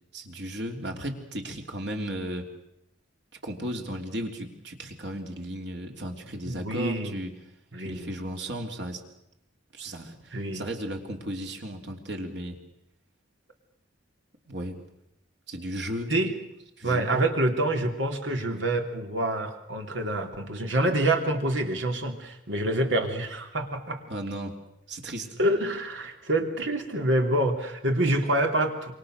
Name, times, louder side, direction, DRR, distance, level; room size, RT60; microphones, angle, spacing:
voice 1, 0.1-2.5 3.4-7.3 7.8-9.0 9.7-12.6 14.5-14.8 15.5-16.1 16.8-17.1 24.1-24.5 24.9-25.3, right 1 dB, 65° right, 3 dB, 3.5 m, -35 dB
voice 2, 6.4-7.2 7.7-8.2 10.3-10.7 16.1-16.3 16.8-24.0 25.4-28.9, right 1 dB, 85° right, 4 dB, 3.3 m, -26 dB
27.5 x 24.5 x 6.6 m, 0.82 s
head